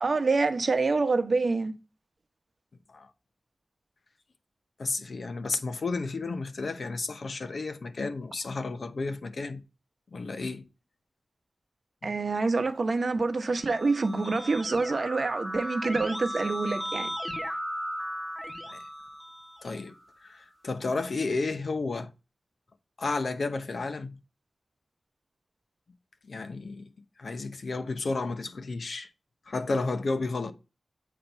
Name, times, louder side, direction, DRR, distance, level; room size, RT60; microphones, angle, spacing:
voice 1, 0.0-1.7 12.0-17.1, right 3 dB, 65° right, 0.9 m, -26 dB
voice 2, 4.8-9.6 10.1-10.7 12.0-12.1 18.7-18.9 19.6-19.9 20.2-22.1 23.0-24.2 26.2-26.9 27.2-29.1 29.5-30.5, left 3 dB, 75° left, 0.8 m, -32 dB
Keyboard (musical), 13.3-20.0, equal, 5° right, 0.9 m, -36 dB
8.4 x 3.0 x 5.3 m
cardioid pair, 55°, 0 cm